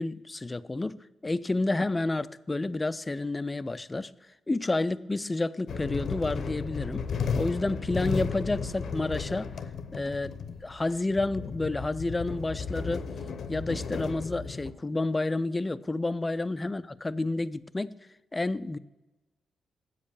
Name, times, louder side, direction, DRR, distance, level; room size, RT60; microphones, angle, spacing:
voice 1, 0.0-4.1 4.5-7.0 7.4-9.5 9.9-10.3 10.6-13.1 13.5-18.0 18.3-18.8, left 2 dB, 20° left, 0.4 m, -30 dB
sound 1, 5.7-14.7, left 5 dB, 65° left, 0.7 m, -34 dB
7.9 x 5.3 x 6.9 m
cardioid pair, 80°, 0 cm